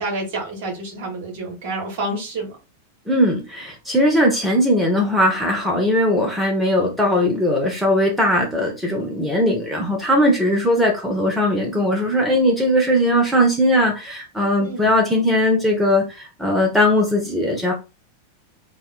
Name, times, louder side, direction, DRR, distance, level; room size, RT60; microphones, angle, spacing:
voice 1, 0.0-2.5 14.6-14.9, right 2 dB, 45° right, -1 dB, 1.2 m, -28 dB
voice 2, 3.1-17.7, equal, 5° right, -1 dB, 0.6 m, -19 dB
2.8 x 2.1 x 2.3 m, 0.30 s
figure-of-eight pair, 90°, 0 cm